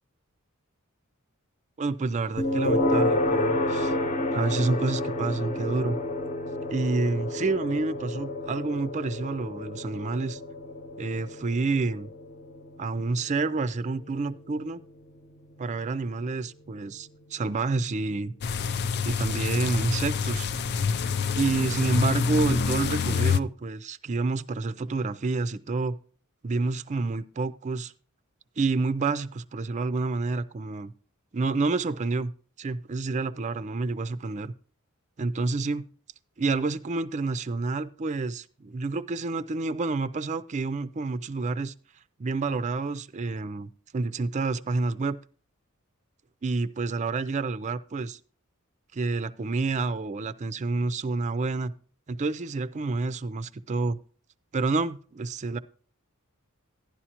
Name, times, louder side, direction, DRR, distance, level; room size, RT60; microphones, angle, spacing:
voice 1, 1.8-3.9 4.3-6.0 6.7-10.4 11.0-12.1 12.8-14.8 15.6-18.3 19.0-20.5 21.4-26.0 26.4-27.9 28.6-30.9 31.3-32.3 32.6-34.5 35.2-35.9 36.4-41.7 42.2-45.2 46.4-48.2 48.9-51.7 52.1-54.0 54.5-55.6, right 3 dB, 35° right, 13 dB, 0.4 m, -28 dB
sound 1, 2.4-17.3, left 1 dB, 35° left, 1.0 m, -30 dB
sound 2, 18.4-23.4, left 5 dB, 50° left, 0.4 m, -27 dB
11.5 x 11.0 x 2.9 m, 0.42 s
head